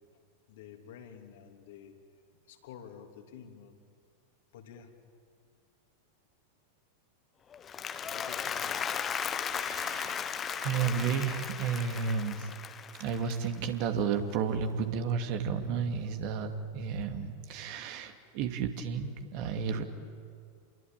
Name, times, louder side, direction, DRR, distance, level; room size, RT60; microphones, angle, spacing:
voice 1, 0.5-2.0 2.5-3.8 4.5-4.9 8.0-8.9 9.7-9.8 10.0-10.1, left 8 dB, 55° left, 4 dB, 3.1 m, -50 dB
Applause, 7.5-13.9, left 7 dB, 25° left, 1.3 m, -36 dB
voice 2, 9.5-10.3 10.6-12.5 12.9-19.8, right 6 dB, 45° right, 6 dB, 2.4 m, -32 dB
29.5 x 23.0 x 9.0 m, 2.2 s
figure-of-eight pair, 90°, 0 cm